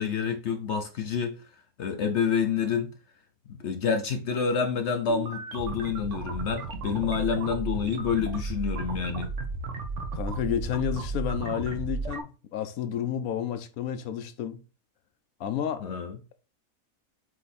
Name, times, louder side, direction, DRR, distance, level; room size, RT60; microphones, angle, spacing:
voice 1, 0.0-1.3 1.8-2.9 3.5-9.3 15.8-16.2, left 6 dB, 60° left, 0.9 m, -28 dB
sound 1, 5.1-12.2, right 4 dB, 60° right, 1.2 m, -34 dB
voice 2, 10.1-14.6 15.4-15.9, left 9 dB, 80° left, 1.2 m, -31 dB
7.6 x 3.0 x 4.1 m
omnidirectional pair, 1.5 m